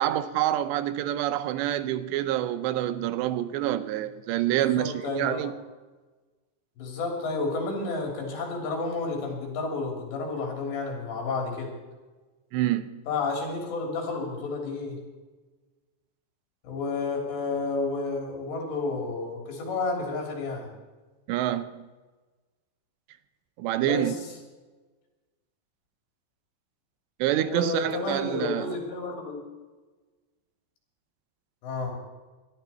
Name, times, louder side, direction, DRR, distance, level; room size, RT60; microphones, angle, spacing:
voice 1, 0.0-5.5 12.5-13.0 21.3-21.8 23.6-24.1 27.2-28.8, right 13 dB, 85° right, 3.0 m, -27 dB
voice 2, 4.7-5.5 6.8-11.7 13.1-15.0 16.6-20.7 23.8-24.1 27.4-29.4 31.6-32.0, left 3 dB, 80° left, 5.4 m, -31 dB
20.0 x 12.5 x 4.4 m
omnidirectional pair, 4.9 m